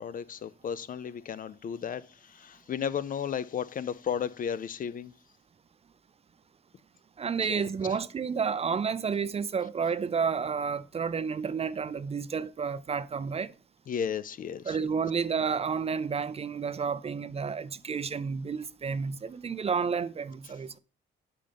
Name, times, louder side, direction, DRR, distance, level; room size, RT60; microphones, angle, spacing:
voice 1, 0.0-5.1 7.4-8.0 13.9-14.8, left 8 dB, 45° left, 0.4 m, -34 dB
voice 2, 7.2-13.5 14.7-20.8, right 6 dB, 30° right, 0.4 m, -31 dB
5.5 x 5.3 x 5.2 m
cardioid pair, 90°, 20 cm